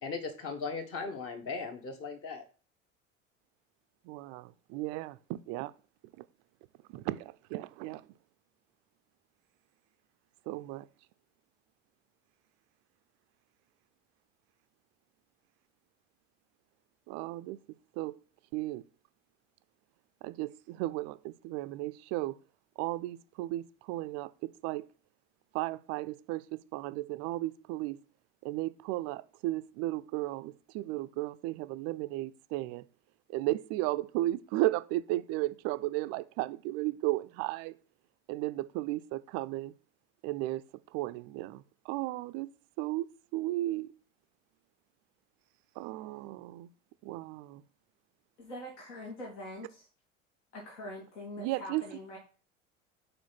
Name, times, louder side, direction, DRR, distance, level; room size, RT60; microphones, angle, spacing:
voice 1, 0.0-2.4, left 4 dB, 35° left, 1.7 m, -38 dB
voice 2, 4.0-5.7 6.2-6.3 6.9-8.0 10.5-10.9 17.1-17.6 18.0-18.1 18.5-18.8 20.2-22.4 22.8-24.8 25.5-28.0 28.4-32.9 33.3-37.8 38.3-39.7 40.2-40.6 40.9-43.9 45.8-46.7 47.0-47.6 51.4-51.8, right 17 dB, 45° right, 0.5 m, -35 dB
voice 3, 48.4-49.9 50.5-52.2, left 1 dB, 65° left, 2.3 m, -43 dB
4.9 x 4.9 x 5.8 m
figure-of-eight pair, 70°, 38 cm